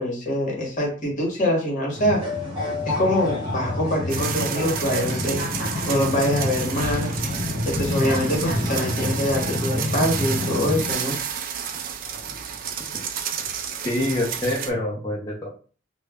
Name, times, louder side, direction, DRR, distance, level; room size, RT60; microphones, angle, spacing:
voice 1, 0.0-2.2 2.9-5.5 5.9-7.2 7.7-11.2, equal, 45° left, -1 dB, 1.0 m, -24 dB
sound 1, 1.9-10.9, left 1 dB, 25° right, 1.0 m, -28 dB
sound 2, 4.1-14.7, right 7 dB, 50° right, 0.3 m, -31 dB
voice 2, 12.0-12.4 12.9-13.0 13.4-13.5 13.8-15.5, left 1 dB, 20° left, -6 dB, 0.5 m, -27 dB
2.2 x 2.0 x 3.4 m, 0.39 s
head